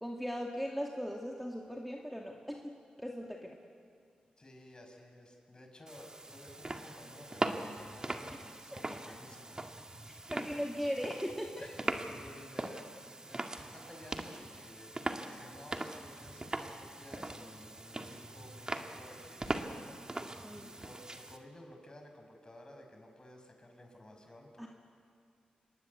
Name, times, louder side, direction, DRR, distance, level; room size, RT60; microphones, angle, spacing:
voice 1, 0.0-3.6 10.1-11.7 20.4-20.7 24.6-24.7, equal, ahead, 0 dB, 2.2 m, -39 dB
voice 2, 4.4-9.6 10.3-10.6 11.6-24.7, left 1 dB, 30° left, 3 dB, 5.7 m, -54 dB
sound 1, 5.9-21.4, right 2 dB, 30° right, 1.9 m, -41 dB
27.0 x 20.0 x 8.2 m, 2.2 s
cardioid pair, 60°, 3 cm